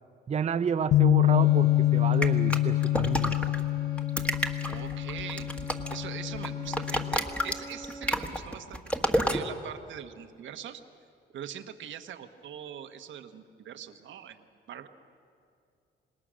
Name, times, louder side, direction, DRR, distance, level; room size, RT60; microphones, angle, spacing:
voice 1, 0.3-3.3, right 6 dB, 35° right, 9 dB, 0.6 m, -30 dB
Bass guitar, 0.9-7.2, left 15 dB, 55° left, 0.5 m, -26 dB
sound 1, 1.2-8.4, equal, 30° left, 3.2 m, -44 dB
sound 2, 2.2-3.6 4.0-6.0 6.3-9.4, equal, 5° left, 1.4 m, -30 dB
voice 2, 4.7-5.5 5.9-8.8 9.1-10.8 11.3-14.9, right 9 dB, 70° right, 7 dB, 1.2 m, -42 dB
26.5 x 19.5 x 6.3 m, 2.5 s
cardioid pair, 90°, 20 cm